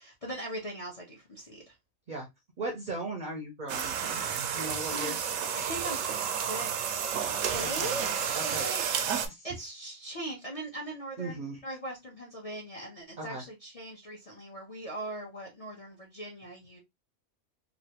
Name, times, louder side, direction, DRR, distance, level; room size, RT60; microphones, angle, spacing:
voice 1, 0.0-1.7 4.5-5.2 5.5-7.2 7.5-16.8, right 1 dB, 35° left, 0.7 m, -40 dB
voice 2, 2.6-4.2 4.5-5.2 7.6-8.0 8.3-8.6 9.3-9.5 11.2-11.6 13.2-13.4, right 2 dB, 45° right, 0.6 m, -37 dB
sound 1, 3.7-9.3, right 7 dB, 75° right, 1.0 m, -31 dB
3.1 x 2.5 x 2.8 m
omnidirectional pair, 1.4 m